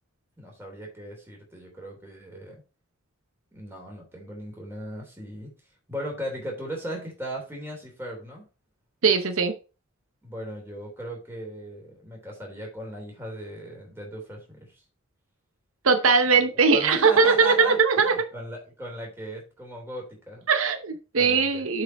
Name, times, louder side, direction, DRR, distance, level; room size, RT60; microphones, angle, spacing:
voice 1, 0.4-2.6 3.5-5.5 5.9-8.5 10.2-14.8 16.5-20.5 21.1-21.6, right 1 dB, 10° right, -1 dB, 3.3 m, -38 dB
voice 2, 9.0-9.5 15.8-18.1 20.5-21.8, right 5 dB, 70° right, 8 dB, 0.8 m, -20 dB
7.9 x 4.8 x 4.6 m, 0.32 s
head